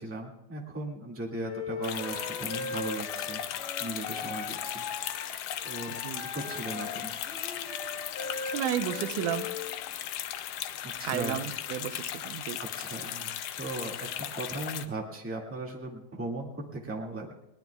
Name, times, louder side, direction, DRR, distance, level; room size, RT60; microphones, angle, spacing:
voice 1, 0.0-3.4 3.8-4.9 5.6-5.9 6.2-7.1 10.8-11.5 12.6-17.3, right 2 dB, 5° right, -2 dB, 1.4 m, -38 dB
Wind instrument woodwind instrument, 1.4-9.8, left 4 dB, 65° left, 2.4 m, -39 dB
sound 1, 1.8-14.9, left 11 dB, 85° left, 1.3 m, -37 dB
sound 2, 1.8-3.1 3.4-5.3 5.6-5.7 6.0-8.4 8.8-10.1 10.9-11.0, left 3 dB, 45° left, 3.8 m, -48 dB
voice 2, 8.5-9.5 11.0-12.6, right 11 dB, 90° right, 10 dB, 2.2 m, -32 dB
21.5 x 19.5 x 2.3 m, 0.91 s
omnidirectional pair, 3.5 m